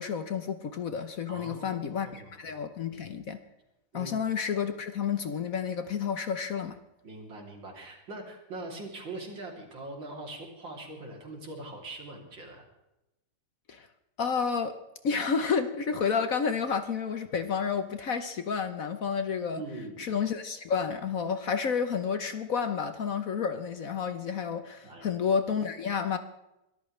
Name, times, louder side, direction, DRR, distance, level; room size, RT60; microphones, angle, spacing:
voice 1, 0.0-3.4 3.9-6.8 13.7-13.9 14.2-14.8 15.0-19.6 20.0-26.2, left 6 dB, 55° left, 9 dB, 1.2 m, -30 dB
voice 2, 1.3-2.4 3.9-4.1 7.0-12.7 19.6-20.1 24.8-25.1, right 2 dB, 80° right, 1 dB, 3.9 m, -42 dB
22.5 x 13.5 x 3.3 m, 0.93 s
omnidirectional pair, 2.0 m